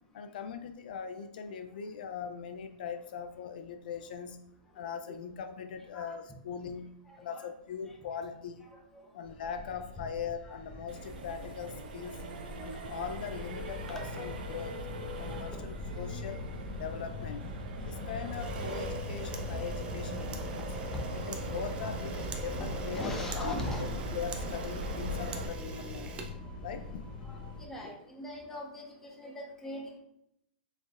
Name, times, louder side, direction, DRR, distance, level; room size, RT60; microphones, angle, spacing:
voice 1, 0.1-4.4 4.7-8.7 9.1-12.3 12.6-14.8 15.2-16.4 16.7-17.4 17.9-20.7 21.3-26.1 26.6-26.8 27.8-27.9, left 7 dB, 70° left, 7 dB, 0.3 m, -41 dB
voice 2, 7.1-7.4 7.9-8.0 8.7-9.1 10.4-10.6 14.4-14.5 15.2-15.5 20.9-21.0 21.8-21.9 22.9-23.9 27.2-30.0, left 1 dB, 10° left, -1 dB, 0.7 m, -41 dB
sound 1, 9.2-27.7, left 2 dB, 25° left, 0.9 m, -42 dB
Accelerating revving vroom, 10.9-25.5, right 1 dB, 75° right, 0.6 m, -41 dB
Camera, 18.3-27.0, right 4 dB, 20° right, 0.4 m, -45 dB
4.2 x 3.4 x 2.4 m, 0.78 s
hypercardioid pair, 150°, 5 cm